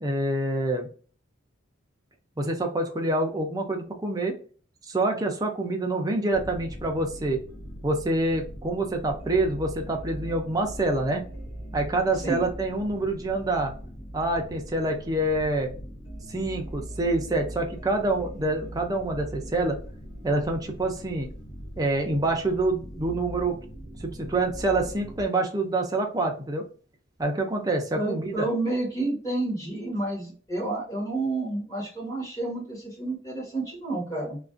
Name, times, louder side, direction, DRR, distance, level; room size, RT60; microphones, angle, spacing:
voice 1, 0.0-0.9 2.4-4.3 4.9-7.4 7.8-11.2 11.7-13.7 14.1-15.7 16.3-19.8 20.2-21.3 21.8-23.6 24.0-26.6 27.2-28.5, right 2 dB, 20° right, 2 dB, 0.4 m, -26 dB
sound 1, 6.3-25.3, right 1 dB, 80° left, 1.3 m, -41 dB
voice 2, 27.9-34.4, right 2 dB, 15° left, -3 dB, 1.0 m, -30 dB
2.4 x 2.1 x 2.4 m, 0.41 s
head